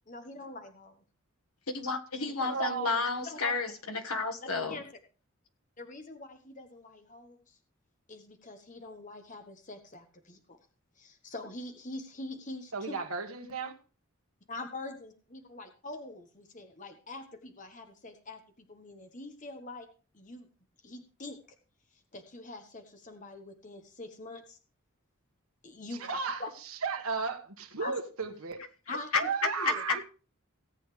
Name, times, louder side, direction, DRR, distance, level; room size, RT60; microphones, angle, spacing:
voice 1, 0.1-1.0 2.4-2.6 3.2-3.5 4.7-4.9 5.8-7.6 8.1-10.6 11.0-12.9 14.5-19.9 20.1-20.5 20.8-21.6 22.1-24.6 25.6-26.1 26.4-26.5 27.8-27.9 28.9-29.3 29.6-29.8, left 2 dB, 35° left, 1.3 m, -44 dB
voice 2, 1.7-4.8 28.9-29.2 29.6-29.7, left 4 dB, 80° left, 1.6 m, -31 dB
voice 3, 2.5-2.9 12.7-13.7 26.0-26.4 26.8-28.6 29.1-30.0, right 5 dB, 80° right, 1.6 m, -34 dB
17.5 x 8.3 x 3.3 m
head